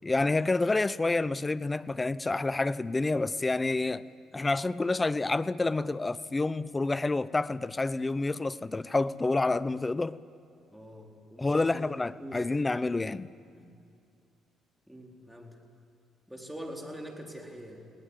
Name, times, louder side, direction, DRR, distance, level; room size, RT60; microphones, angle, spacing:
voice 1, 0.0-4.0 4.3-10.2 11.4-13.3, left 3 dB, 20° left, 0.7 m, -28 dB
voice 2, 10.7-11.8 12.1-12.4 13.5-13.7 14.9-15.6 16.3-17.8, equal, 5° right, 4.1 m, -44 dB
20.5 x 17.5 x 9.8 m
supercardioid pair, 65°, 0 cm